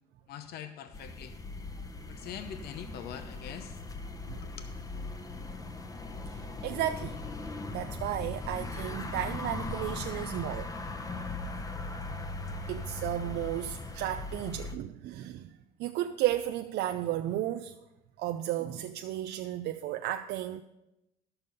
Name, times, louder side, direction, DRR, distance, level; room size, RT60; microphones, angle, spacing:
voice 1, 0.3-1.3 2.1-3.8 4.4-4.7, left 8 dB, 70° left, 0.8 m, -43 dB
sound 1, 0.9-14.8, left 3 dB, 20° left, 0.9 m, -39 dB
voice 2, 6.3-7.2 7.7-10.7 12.7-17.8 18.2-20.6, right 13 dB, 80° right, 0.5 m, -34 dB
11.5 x 6.9 x 5.4 m
cardioid pair, 110°, 17 cm